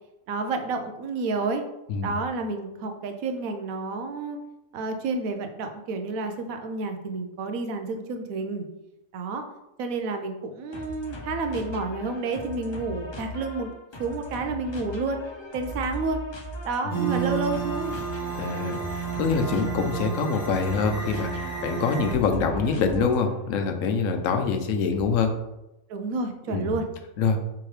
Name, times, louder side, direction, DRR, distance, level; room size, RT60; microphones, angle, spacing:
voice 1, 0.3-1.6 2.0-4.4 4.7-8.7 9.1-9.4 9.8-13.7 14.0-15.2 15.5-16.2 16.6-18.0 25.9-26.9, right 3 dB, 85° right, 6 dB, 1.1 m, -30 dB
sound 1, 10.7-23.5, left 2 dB, 50° left, 0.3 m, -39 dB
sound 2, 16.9-22.1, right 7 dB, 25° left, 0.9 m, -31 dB
voice 2, 18.4-25.3 26.5-26.8 27.2-27.4, left 5 dB, 75° left, 6 dB, 1.0 m, -25 dB
4.5 x 3.7 x 3.2 m, 0.92 s
omnidirectional pair, 1.4 m